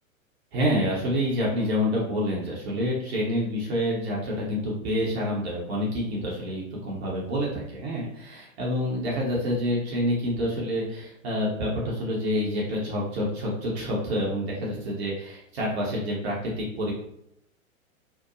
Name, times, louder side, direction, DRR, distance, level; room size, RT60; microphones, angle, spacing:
voice 1, 0.5-16.9, equal, 50° right, -4 dB, 0.9 m, -28 dB
2.7 x 2.2 x 2.5 m, 0.77 s
figure-of-eight pair, 105°, 41 cm